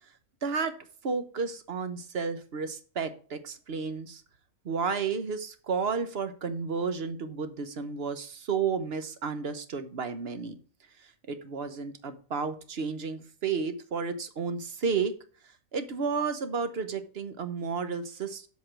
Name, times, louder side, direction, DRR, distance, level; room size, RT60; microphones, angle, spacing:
voice 1, 0.4-0.7 1.0-4.2 4.6-10.6 11.0-15.1 15.4-18.5, right 5 dB, 50° right, 10 dB, 1.1 m, -32 dB
8.0 x 5.3 x 6.0 m, 0.41 s
omnidirectional pair, 1.5 m